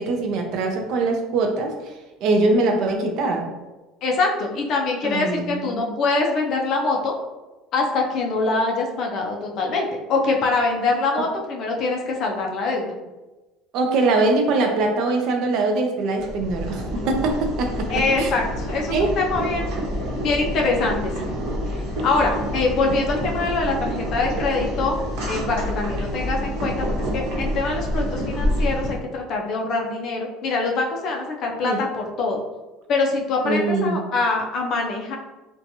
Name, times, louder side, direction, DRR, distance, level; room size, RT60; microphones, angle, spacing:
voice 1, 0.0-1.7 2.2-3.5 5.0-5.9 11.1-11.2 13.7-17.9 18.2-18.3 18.9-19.1 31.6-31.8 33.4-34.0, right 3 dB, 55° right, 3 dB, 0.4 m, -22 dB
voice 2, 4.0-7.2 7.7-13.0 17.9-19.7 20.2-21.3 21.7-25.0 25.2-32.4 32.9-35.2, left 3 dB, 45° left, 1 dB, 0.4 m, -24 dB
Boiling, 16.2-28.9, equal, 75° right, 0.9 m, -27 dB
2.8 x 2.2 x 2.6 m, 1.1 s
cardioid pair, 160°, 0 cm